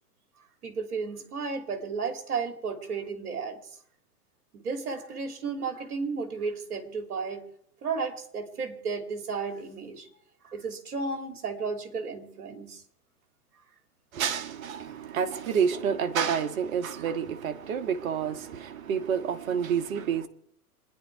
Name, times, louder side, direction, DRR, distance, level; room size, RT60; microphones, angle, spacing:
voice 1, 0.6-3.6 4.5-7.4 7.8-10.1 10.4-12.8 15.1-15.2, right 4 dB, 75° right, 3.1 m, -33 dB
voice 2, 14.1-20.3, right 7 dB, 60° right, 1.7 m, -29 dB
27.5 x 10.5 x 4.7 m
hypercardioid pair, 120°, 46 cm